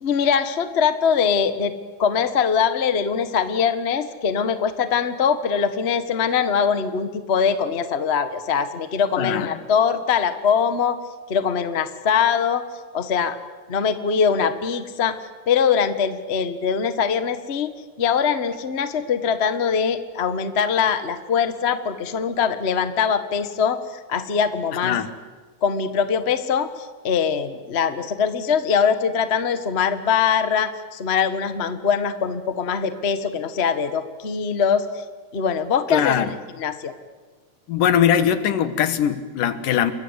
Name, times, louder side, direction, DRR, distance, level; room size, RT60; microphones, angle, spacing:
voice 1, 0.0-1.7 2.0-11.0 11.3-12.6 12.9-13.4 13.7-15.1 15.5-17.7 18.0-23.8 24.1-25.0 25.6-35.0 35.3-36.9, left 6 dB, 70° left, 10 dB, 0.6 m, -22 dB
voice 2, 9.2-9.6 24.8-25.1 35.9-36.3 37.7-39.9, left 9 dB, 90° left, 11 dB, 3.0 m, -21 dB
29.5 x 22.5 x 8.2 m, 1.4 s
omnidirectional pair, 3.7 m